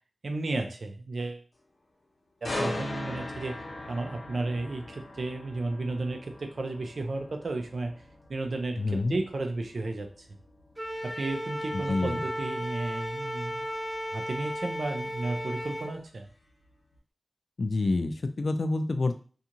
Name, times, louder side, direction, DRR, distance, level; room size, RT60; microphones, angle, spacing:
voice 1, 0.2-1.4 2.4-8.0 8.3-10.3 11.0-13.7 14.1-16.3, right 2 dB, 70° right, 5 dB, 0.5 m, -33 dB
sound 1, 2.4-16.3 16.7-17.0, left 1 dB, 80° left, 0.8 m, -41 dB
voice 2, 8.8-9.2 11.7-12.2 17.6-19.2, left 3 dB, 65° left, 8 dB, 0.3 m, -28 dB
Wind instrument woodwind instrument, 10.8-15.9, equal, 15° right, 0.9 m, -35 dB
2.5 x 2.4 x 2.8 m, 0.40 s
wide cardioid pair, 90°, 0 cm